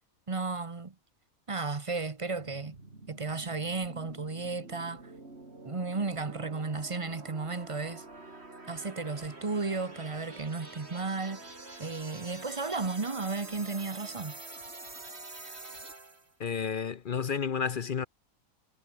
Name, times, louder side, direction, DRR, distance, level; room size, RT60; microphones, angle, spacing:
voice 1, 0.3-0.9 1.5-2.8 3.1-5.0 5.6-8.0 8.7-11.5 11.8-14.3, right 4 dB, 25° right, 1.0 m, -34 dB
sound 1, 2.3-16.3, right 2 dB, 45° right, 4.0 m, -47 dB
voice 2, 16.4-18.1, left 6 dB, 50° left, 0.7 m, -31 dB
omnidirectional pair, 1.5 m